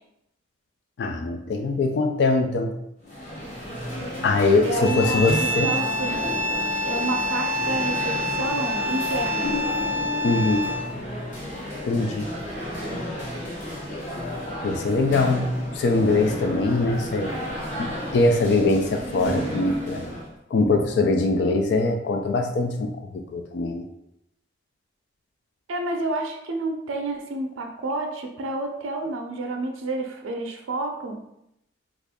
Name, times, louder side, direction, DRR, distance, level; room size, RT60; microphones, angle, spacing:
voice 1, 1.0-2.8 4.2-5.8 10.2-10.7 11.8-12.3 14.6-17.3 17.8-20.0 20.5-23.9, left 3 dB, 60° left, 4 dB, 0.3 m, -22 dB
sound 1, 3.0-20.3, equal, 40° left, 0.9 m, -32 dB
voice 2, 4.6-6.2 6.8-9.6 25.7-31.2, right 2 dB, 85° right, 3 dB, 0.5 m, -29 dB
sound 2, 4.8-11.0, left 1 dB, 15° right, 0.5 m, -27 dB
3.0 x 2.4 x 3.5 m, 0.81 s
head